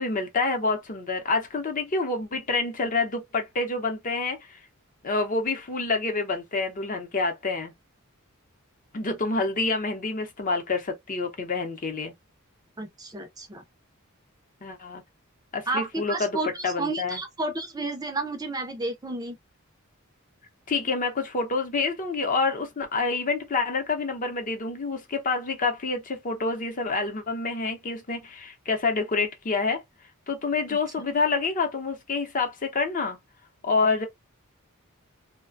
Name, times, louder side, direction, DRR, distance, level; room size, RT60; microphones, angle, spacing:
voice 1, 0.0-4.6 5.0-7.7 8.9-12.1 14.6-15.0 15.5-16.4 16.6-17.2 20.7-29.8 30.3-33.2 33.6-34.1, left 3 dB, 40° left, 0.7 m, -27 dB
voice 2, 12.8-13.6 15.7-19.4 30.7-30.8, right 2 dB, 20° right, 0.4 m, -31 dB
2.4 x 2.1 x 2.5 m
head